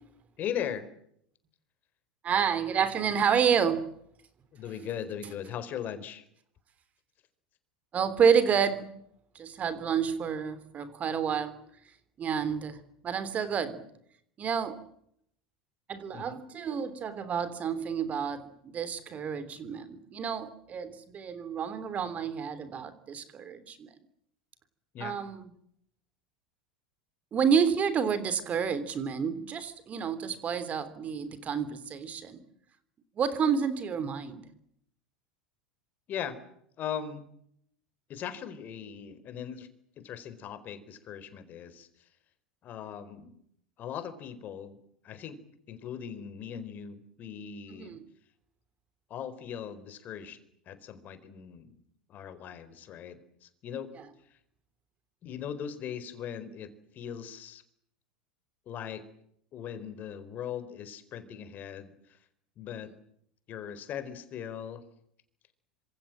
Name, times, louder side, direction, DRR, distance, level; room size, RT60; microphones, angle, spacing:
voice 1, 0.4-0.9 4.5-6.2 16.1-16.4 24.9-25.2 36.1-36.4 36.8-37.3 38.1-39.7 40.0-41.9 42.6-43.3 43.8-44.8 45.0-45.4 45.7-48.0 49.1-50.4 50.7-51.8 52.1-53.9 55.2-57.6 58.7-59.0 59.5-62.2 62.6-62.9 63.5-64.8, left 8 dB, 40° left, 11 dB, 4.4 m, -39 dB
voice 2, 2.2-3.8 7.9-8.9 9.4-11.6 12.2-13.8 14.4-14.8 15.9-23.9 25.0-25.5 27.3-32.4 33.2-34.5 47.7-48.0, right 7 dB, 30° right, 13 dB, 3.2 m, -29 dB
27.0 x 26.5 x 7.6 m, 0.71 s
figure-of-eight pair, 80°, 5 cm